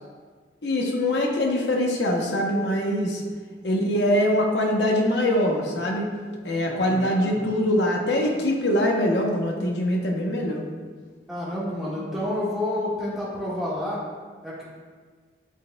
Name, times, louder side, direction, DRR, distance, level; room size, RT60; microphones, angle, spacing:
voice 1, 0.6-3.2 3.6-6.1 6.4-10.6, left 1 dB, 80° left, 0 dB, 0.8 m, -23 dB
voice 2, 6.7-7.5 11.3-14.0 14.4-14.6, left 1 dB, ahead, -9 dB, 1.5 m, -29 dB
9.9 x 4.3 x 2.2 m, 1.5 s
head